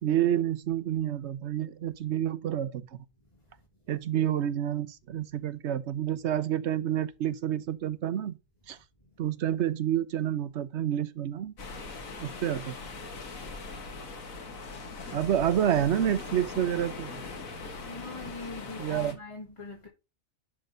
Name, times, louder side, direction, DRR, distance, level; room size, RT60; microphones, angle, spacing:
voice 1, 0.0-2.9 3.9-8.4 8.7-8.8 9.2-11.5 12.2-12.7 15.1-17.2 18.8-19.2, right 10 dB, 60° right, 1.0 m, -29 dB
sound 1, 11.6-19.1, left 3 dB, 80° left, 1.9 m, -41 dB
voice 2, 17.8-19.9, left 3 dB, 25° left, 1.7 m, -42 dB
11.0 x 3.8 x 5.5 m
omnidirectional pair, 1.4 m